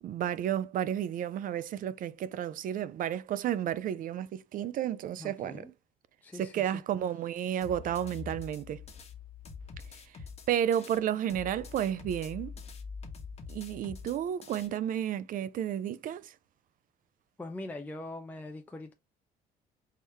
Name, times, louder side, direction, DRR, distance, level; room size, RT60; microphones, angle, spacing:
voice 1, 0.0-5.7 6.4-8.8 10.5-12.5 13.5-16.3, right 10 dB, 55° right, 0.4 m, -32 dB
voice 2, 5.2-5.7 6.2-6.8 17.4-18.9, left 2 dB, 10° left, 0.5 m, -42 dB
sound 1, 7.6-11.0 11.3-14.7, left 5 dB, 40° left, 1.2 m, -45 dB
4.5 x 3.4 x 3.0 m
cardioid pair, 110°, 17 cm